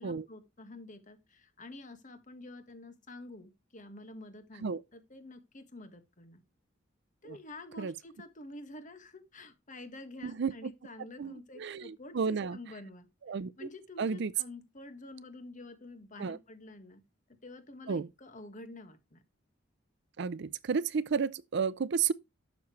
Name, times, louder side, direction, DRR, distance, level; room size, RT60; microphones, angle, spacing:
voice 1, 0.0-6.4 7.2-13.1 13.6-17.0 17.4-19.2, left 2 dB, 40° left, 1.7 m, -48 dB
voice 2, 10.2-10.7 11.2-12.6 13.3-13.7 14.0-14.3 16.2-16.4 17.9-18.1 20.2-22.1, right 5 dB, 60° right, 0.5 m, -32 dB
11.5 x 7.1 x 3.2 m
head